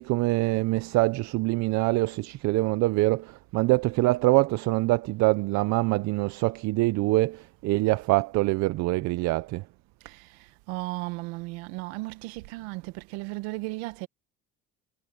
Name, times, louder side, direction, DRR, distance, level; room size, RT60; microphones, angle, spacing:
voice 1, 0.0-9.6, right 20 dB, 65° right, 0.7 m, -24 dB
voice 2, 10.7-14.1, right 23 dB, 85° right, 1.6 m, -35 dB
supercardioid pair, 105°, 30 cm